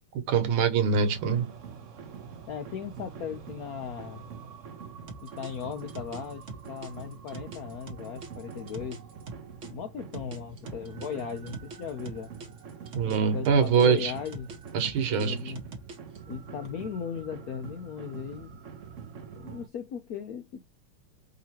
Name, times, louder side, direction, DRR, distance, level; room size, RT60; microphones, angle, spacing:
voice 1, 0.2-1.5 12.9-14.1 14.7-15.5, right 6 dB, 80° right, 1.8 m, -24 dB
sound 1, 0.8-19.7, right 6 dB, 55° right, 0.8 m, -45 dB
voice 2, 2.5-4.2 5.2-9.0 9.7-12.3 13.0-14.5 15.1-15.6 16.3-18.6 19.4-20.6, left 7 dB, 70° left, 0.8 m, -37 dB
sound 2, 5.1-9.7 10.1-13.2 13.4-16.2, right 3 dB, 40° right, 1.4 m, -43 dB
5.2 x 2.9 x 2.8 m
omnidirectional pair, 2.3 m